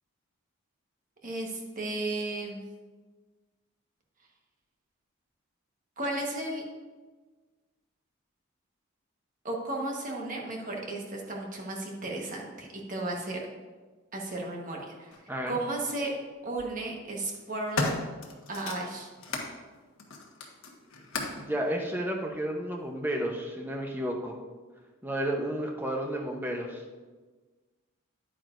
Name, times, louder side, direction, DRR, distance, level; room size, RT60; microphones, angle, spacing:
voice 1, 1.2-2.6 6.0-6.6 9.4-13.4 14.1-15.1 15.5-16.1 16.4-17.9 18.5-19.1, right 2 dB, 35° right, -1 dB, 1.3 m, -34 dB
sound 1, 15.1-15.2 16.3-16.7 17.2-19.5 20.0-21.5 22.3-22.4, left 3 dB, 70° left, 1.2 m, -35 dB
voice 2, 15.3-15.6 21.4-24.4 25.0-26.8, right 1 dB, 10° right, 1 dB, 0.8 m, -32 dB
10.0 x 9.0 x 2.6 m, 1.4 s
head